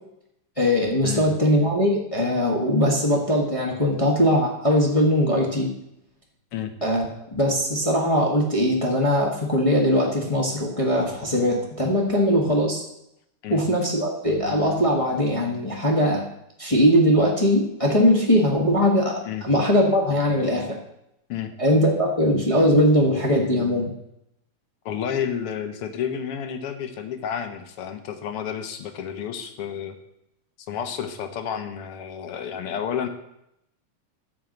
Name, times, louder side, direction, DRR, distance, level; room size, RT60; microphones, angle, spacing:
voice 1, 0.6-5.7 6.8-12.8 13.5-16.3 16.6-20.8 21.6-23.9, equal, 40° left, -2 dB, 0.4 m, -21 dB
voice 2, 24.8-30.0 30.7-33.1, left 8 dB, 60° left, 7 dB, 1.6 m, -30 dB
13.5 x 4.6 x 7.8 m, 0.81 s
omnidirectional pair, 3.5 m